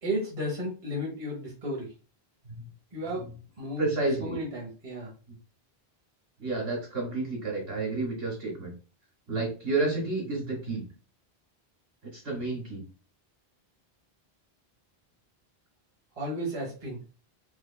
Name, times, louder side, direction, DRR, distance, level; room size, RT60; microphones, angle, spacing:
voice 1, 0.0-1.9 2.9-3.3 3.6-3.8 4.2-5.1 16.1-17.0, equal, 35° right, -3 dB, 1.1 m, -33 dB
voice 2, 3.8-4.4 6.4-8.7 9.3-10.9 12.0-12.8, right 3 dB, 65° right, -3 dB, 2.2 m, -30 dB
4.5 x 2.5 x 2.2 m, 0.34 s
omnidirectional pair, 1.1 m